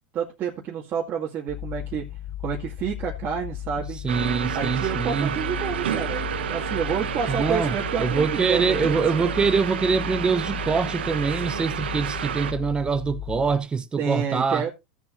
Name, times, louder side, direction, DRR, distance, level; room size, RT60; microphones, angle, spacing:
voice 1, 0.1-2.0 2.4-4.0 4.5-9.2 14.0-14.7, right 7 dB, 35° right, 2.2 m, -29 dB
sound 1, 1.5-13.6, left 13 dB, 50° left, 1.1 m, -36 dB
voice 2, 4.0-5.3 7.3-14.7, right 5 dB, 15° right, 0.7 m, -24 dB
sound 2, 4.1-12.5, right 9 dB, 85° right, 1.1 m, -30 dB
16.5 x 7.3 x 2.6 m
supercardioid pair, 125°, 6 cm